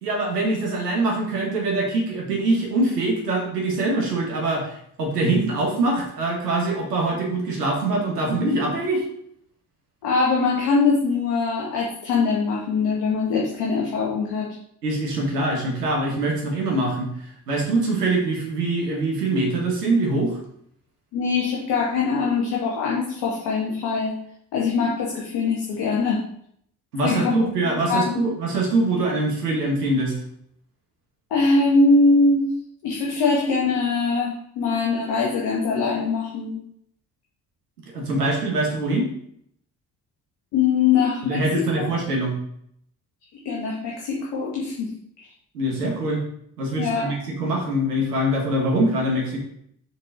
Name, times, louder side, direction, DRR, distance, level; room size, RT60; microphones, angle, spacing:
voice 1, 0.0-9.0 14.8-20.4 26.9-30.1 37.9-39.1 41.2-42.4 45.5-46.2 46.6-49.4, right 2 dB, 80° right, 0 dB, 1.4 m, -23 dB
voice 2, 10.0-14.5 21.1-24.2 24.5-26.2 27.0-28.3 31.3-32.5 32.8-36.6 40.5-41.9 43.4-44.9 46.8-47.2, left 4 dB, 55° left, -3 dB, 1.6 m, -22 dB
6.8 x 4.3 x 3.8 m, 0.68 s
figure-of-eight pair, 45°, 47 cm